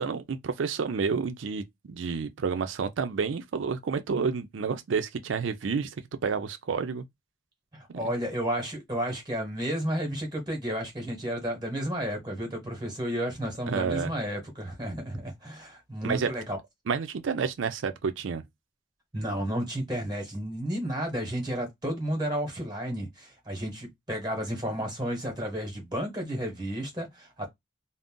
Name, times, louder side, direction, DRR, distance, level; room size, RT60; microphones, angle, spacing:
voice 1, 0.0-5.9 6.2-7.0 7.9-8.0 13.7-14.1 16.0-16.3 16.9-18.4, right 5 dB, 75° right, 0.4 m, -30 dB
voice 2, 7.7-16.6 19.1-27.5, equal, 20° right, 0.9 m, -32 dB
2.5 x 2.0 x 3.6 m
head